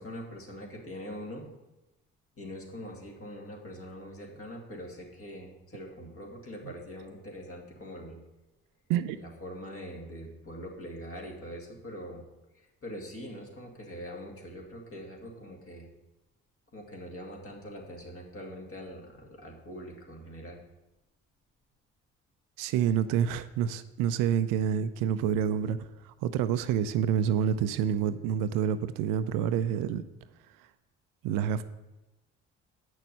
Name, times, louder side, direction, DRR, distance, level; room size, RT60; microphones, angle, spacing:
voice 1, 0.0-1.5 2.4-8.2 9.2-12.2 12.5-15.9 16.7-20.6, equal, 40° left, -1 dB, 2.4 m, -43 dB
voice 2, 22.6-30.0 31.2-31.6, right 8 dB, 70° right, 13 dB, 0.5 m, -28 dB
8.0 x 6.2 x 5.5 m, 1.0 s
hypercardioid pair, 45°, 35 cm